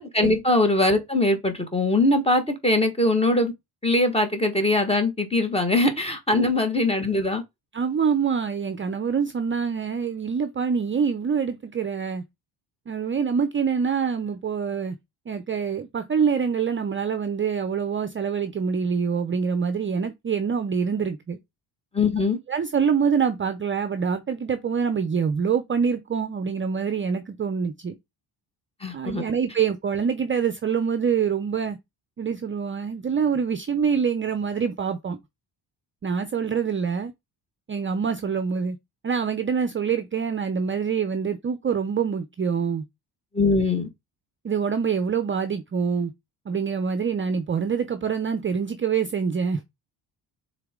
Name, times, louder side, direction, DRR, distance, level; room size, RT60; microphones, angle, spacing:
voice 1, 0.0-3.5 3.8-7.4 21.9-22.4 28.8-29.2 43.3-43.9, left 2 dB, 15° left, 1.5 m, -22 dB
voice 2, 7.7-12.2 12.9-14.9 15.3-21.4 22.5-28.0 28.9-31.8 32.2-35.2 36.0-37.1 37.7-38.8 39.0-42.8 44.4-46.1 46.5-49.6, right 6 dB, 30° right, 0.5 m, -25 dB
6.6 x 3.9 x 3.7 m
cardioid pair, 125°, 43 cm